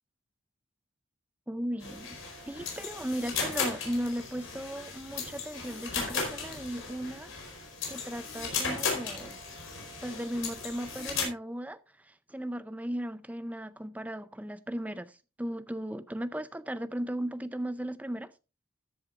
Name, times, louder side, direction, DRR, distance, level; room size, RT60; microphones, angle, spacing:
voice 1, 1.5-2.2 2.5-7.3 7.9-9.4 10.0-18.3, right 1 dB, 5° right, 0.5 m, -36 dB
sound 1, 1.8-11.3, left 5 dB, 65° left, 4.4 m, -36 dB
13.5 x 10.5 x 2.5 m
head